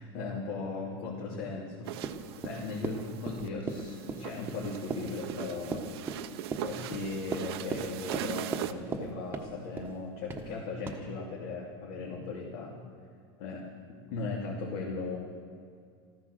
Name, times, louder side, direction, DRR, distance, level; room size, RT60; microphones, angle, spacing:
voice 1, 0.0-1.9 2.4-5.9 6.6-12.7 13.4-13.7 14.1-15.2, left 3 dB, 60° left, -2 dB, 2.8 m, -37 dB
sound 1, 1.8-8.7, right 12 dB, 75° right, 0.8 m, -41 dB
Run, 2.0-9.1 9.3-9.9 10.3-10.5 10.9-11.0, right 5 dB, 15° right, 1.3 m, -37 dB
14.5 x 14.0 x 6.7 m, 2.3 s
supercardioid pair, 160°, 13 cm